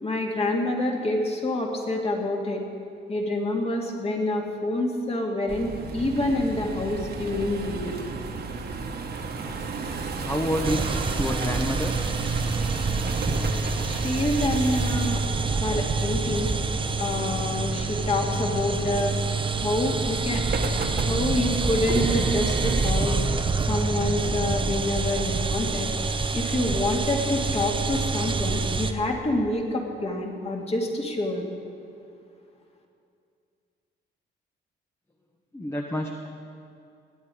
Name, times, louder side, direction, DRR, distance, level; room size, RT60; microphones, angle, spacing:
voice 1, 0.0-2.6 3.1-8.0 13.8-16.5 17.0-19.2 19.6-20.4 21.0-23.2 23.7-25.9 26.3-31.4, left 1 dB, 30° left, 1 dB, 2.2 m, -27 dB
sound 1, 5.5-22.9, right 4 dB, 55° right, 1.5 m, -33 dB
voice 2, 10.2-10.9 11.2-12.0 35.5-36.3, equal, 15° left, 2 dB, 1.0 m, -28 dB
sound 2, 10.6-28.9, right 4 dB, 25° right, 0.8 m, -27 dB
20.0 x 8.9 x 4.9 m, 2.5 s
cardioid pair, 90°, 20 cm